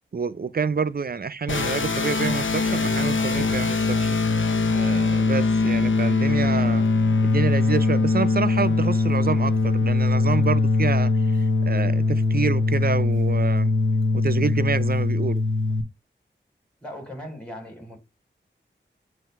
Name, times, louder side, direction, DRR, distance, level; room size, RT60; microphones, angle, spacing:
voice 1, 0.1-4.1 4.7-6.9 7.2-11.1 11.6-13.7 14.1-15.4, right 5 dB, 50° right, 0.6 m, -27 dB
sound 1, 1.5-15.8, left 3 dB, 85° left, 0.9 m, -22 dB
voice 2, 16.8-18.0, equal, 5° left, 3.7 m, -38 dB
7.7 x 2.7 x 5.9 m
cardioid pair, 40°, 19 cm